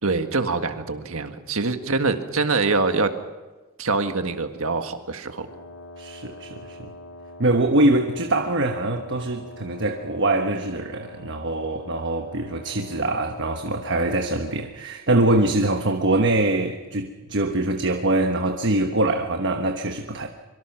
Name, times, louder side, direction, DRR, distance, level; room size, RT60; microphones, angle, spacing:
voice 1, 0.0-3.2 3.8-5.5, right 3 dB, 70° right, 1.7 m, -24 dB
Wind instrument woodwind instrument, 5.4-14.8, left 1 dB, 90° left, 1.9 m, -43 dB
voice 2, 6.0-6.9 7.4-20.3, right 2 dB, 55° right, 1.2 m, -23 dB
25.0 x 24.0 x 6.0 m
head